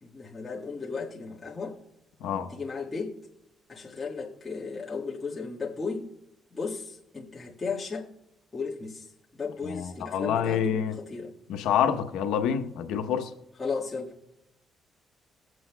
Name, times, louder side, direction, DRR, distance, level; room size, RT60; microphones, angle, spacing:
voice 1, 0.0-1.8 2.4-3.2 3.7-6.1 6.5-8.1 8.5-9.1 9.3-11.3 13.6-14.1, left 4 dB, 25° left, 1.6 m, -35 dB
voice 2, 9.6-11.0 11.5-13.3, left 8 dB, 90° left, 0.8 m, -27 dB
22.0 x 7.8 x 2.2 m
cardioid pair, 90°, 0 cm